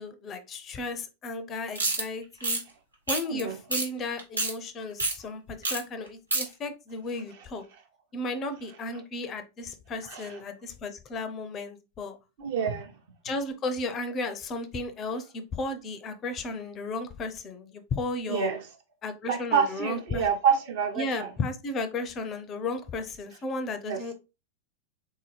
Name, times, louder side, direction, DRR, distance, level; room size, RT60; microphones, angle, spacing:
voice 1, 0.0-2.6 3.1-7.6 8.1-12.2 13.2-18.5 19.0-20.3 21.0-24.1, left 2 dB, 30° left, 0.5 m, -34 dB
sound 1, 1.8-2.0 2.4-2.6 3.1-3.4 3.7-3.9 4.2-4.5 5.0-5.1 5.6-5.8 6.1-6.4, right 2 dB, 85° right, 1.0 m, -27 dB
voice 2, 12.4-12.9 18.3-18.6 19.3-21.3 23.9-24.0, right 7 dB, 55° right, 0.8 m, -27 dB
3.6 x 2.7 x 3.1 m
figure-of-eight pair, 90°, 0 cm